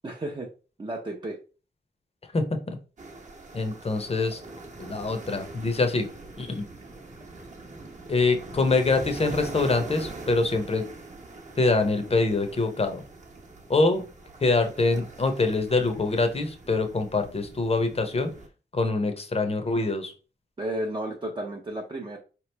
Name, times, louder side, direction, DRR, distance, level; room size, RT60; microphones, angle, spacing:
voice 1, 0.0-0.5 0.8-1.4 20.6-22.2, right 1 dB, 25° right, 0 dB, 0.5 m, -32 dB
voice 2, 2.3-2.8 3.5-4.4 4.8-6.1 6.4-6.7 8.1-10.8 11.6-13.0 13.7-14.0 14.4-18.3 18.7-20.1, left 3 dB, 30° left, 7 dB, 0.7 m, -24 dB
sound 1, 3.0-18.5, right 2 dB, 40° right, 0.8 m, -42 dB
4.8 x 3.0 x 3.2 m, 0.35 s
wide cardioid pair, 175°, 19 cm